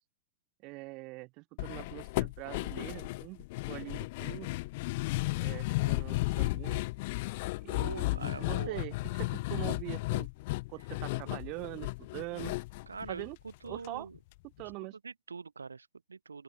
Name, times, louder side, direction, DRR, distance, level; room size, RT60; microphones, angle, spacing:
voice 1, 0.6-4.5 5.4-6.8 7.6-10.3 10.7-12.5 13.1-13.4 13.6-14.1 14.6-15.0, right 26 dB, 40° right, 6.5 m, -43 dB
sound 1, 1.6-13.9 14.1-14.2 14.6-14.7, left 22 dB, 50° left, 1.2 m, -34 dB
voice 2, 7.8-8.8 12.9-13.3 13.6-14.1 15.0-16.4, right 4 dB, 75° right, 3.5 m, -43 dB
open air
figure-of-eight pair, 90°, 0 cm